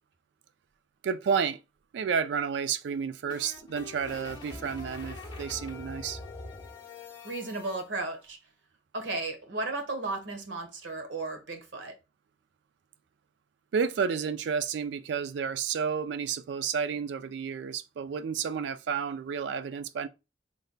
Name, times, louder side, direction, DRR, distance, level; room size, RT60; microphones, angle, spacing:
voice 1, 1.0-1.6 1.9-6.2 13.7-20.1, right 6 dB, 70° right, 0.3 m, -31 dB
sound 1, 2.9-7.8, left 3 dB, 25° left, 1.0 m, -43 dB
voice 2, 7.2-8.4 8.9-11.9, right 2 dB, 90° right, 0.9 m, -34 dB
3.2 x 2.1 x 3.9 m
head